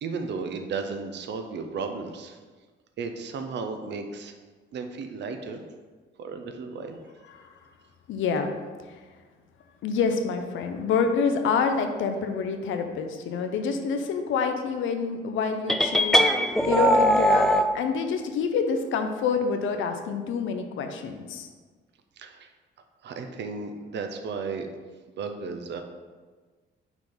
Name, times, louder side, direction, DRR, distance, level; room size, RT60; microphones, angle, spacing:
voice 1, 0.0-2.4 3.0-4.3 4.7-5.6 6.2-7.0 22.2-22.5 23.0-24.7 25.2-25.8, right 4 dB, 60° right, 6 dB, 0.7 m, -34 dB
voice 2, 8.1-8.5 8.8-9.0 9.8-21.5, left 5 dB, 80° left, 6 dB, 0.7 m, -27 dB
sound 1, 15.7-17.7, equal, ahead, 0.3 m, -20 dB
5.8 x 4.4 x 3.9 m, 1.4 s
cardioid pair, 90°, 20 cm